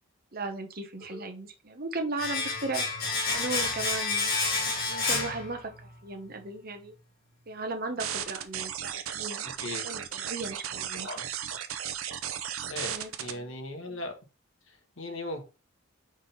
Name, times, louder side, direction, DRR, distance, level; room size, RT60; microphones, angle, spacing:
voice 1, 0.3-2.9 3.3-4.4 4.9-6.9 7.5-9.5 9.8-11.1 12.8-13.5 13.9-14.0, right 3 dB, 45° right, 6 dB, 1.1 m, -36 dB
voice 2, 1.0-1.3 8.2-8.3 9.6-9.9 11.0-11.6 12.6-14.1 14.7-15.5, left 2 dB, 65° left, 4 dB, 1.5 m, -39 dB
Domestic sounds home sounds, 2.2-6.0 6.3-6.4, left 3 dB, 45° left, 2.1 m, -30 dB
sound 1, 8.0-13.3, right 9 dB, 85° right, 0.8 m, -35 dB
4.9 x 3.8 x 5.5 m, 0.30 s
head